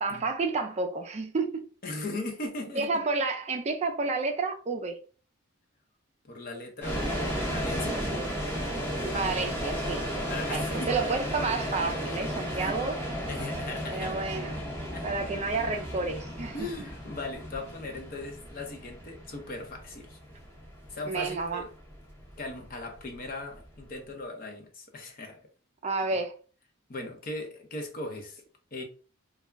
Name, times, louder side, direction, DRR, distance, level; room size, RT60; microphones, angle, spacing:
voice 1, 0.0-1.6 2.7-5.0 8.0-8.3 9.0-10.0 10.5-13.0 13.9-14.6 15.0-16.7 21.1-21.6 25.8-26.3, right 3 dB, 30° right, 0.4 m, -30 dB
voice 2, 1.8-3.0 6.3-8.0 10.3-11.0 12.4-12.8 13.2-14.1 14.9-15.1 16.5-20.2 20.9-21.7 22.4-25.4 26.9-28.4 28.7-28.8, left 2 dB, 45° left, 0.6 m, -38 dB
sound 1, 6.8-23.8, equal, 10° left, 0.7 m, -34 dB
2.3 x 2.0 x 3.3 m
head